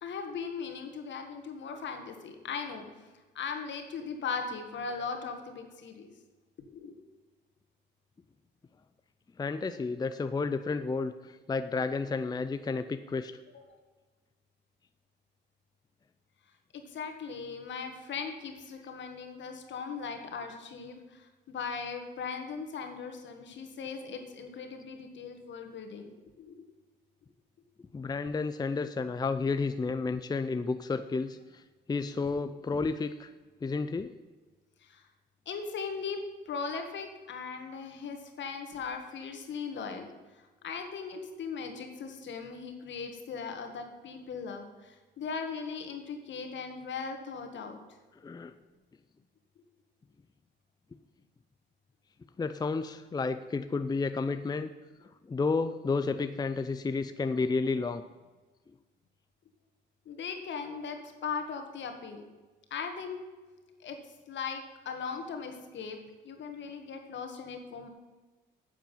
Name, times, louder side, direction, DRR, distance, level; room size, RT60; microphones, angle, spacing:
voice 1, 0.0-2.9 3.4-6.1 6.7-6.9 13.5-13.6 16.7-26.1 26.4-26.6 34.8-35.0 35.5-40.1 40.4-47.8 60.1-62.2 62.7-63.2 63.8-64.0 64.3-66.0 66.2-67.9, left 5 dB, 65° left, 5 dB, 1.9 m, -38 dB
voice 2, 9.4-13.3 27.9-31.6 31.9-33.3 33.6-34.1 48.2-48.5 52.4-54.7 55.0-58.0, left 4 dB, 20° left, 10 dB, 0.5 m, -31 dB
9.2 x 7.5 x 7.3 m, 1.3 s
cardioid pair, 90°, 20 cm